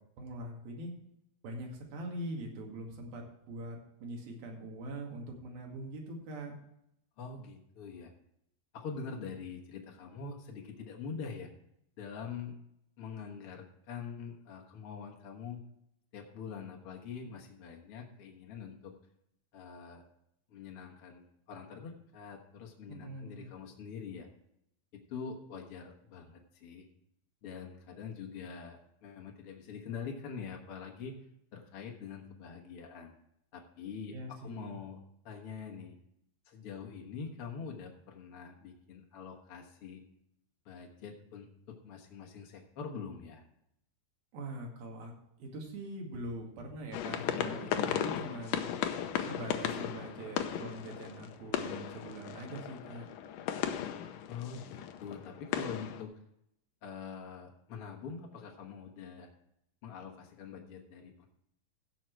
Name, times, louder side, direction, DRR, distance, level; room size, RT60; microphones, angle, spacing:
voice 1, 0.2-0.9 1.4-6.6 22.9-23.5 34.1-34.8 44.3-45.1 45.4-48.7 49.2-53.1, right 1 dB, 80° right, 0 dB, 4.0 m, -43 dB
voice 2, 7.2-8.1 8.7-11.5 12.0-12.5 13.0-15.6 16.1-18.9 19.5-20.0 20.5-24.3 24.9-26.9 27.4-31.1 31.5-33.1 33.5-34.1 34.4-36.0 36.4-40.0 40.6-43.4 54.3-56.1 56.8-59.3 59.8-61.3, left 6 dB, 55° left, 1 dB, 1.7 m, -44 dB
sound 1, 46.9-56.0, left 9 dB, 75° left, 2.3 m, -36 dB
15.5 x 6.4 x 4.6 m, 0.79 s
omnidirectional pair, 4.1 m